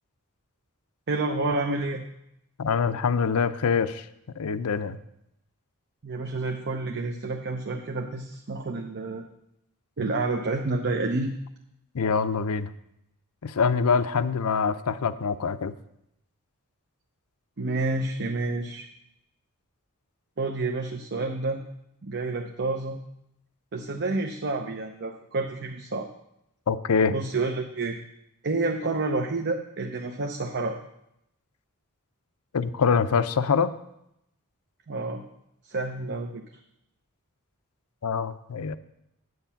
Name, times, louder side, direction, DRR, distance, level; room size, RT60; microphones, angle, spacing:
voice 1, 1.1-2.0 6.0-9.3 10.0-11.3 17.6-18.9 20.4-21.6 22.0-23.0 23.7-26.1 27.1-28.0 28.4-30.8 34.9-35.2 35.7-36.4, right 3 dB, 50° right, 3 dB, 0.8 m, -29 dB
voice 2, 2.6-4.0 4.4-5.0 11.9-12.7 13.4-15.7 26.7-27.1 32.5-33.7 38.0-38.8, left 5 dB, 75° left, 12 dB, 0.6 m, -24 dB
9.5 x 8.2 x 5.7 m, 0.81 s
head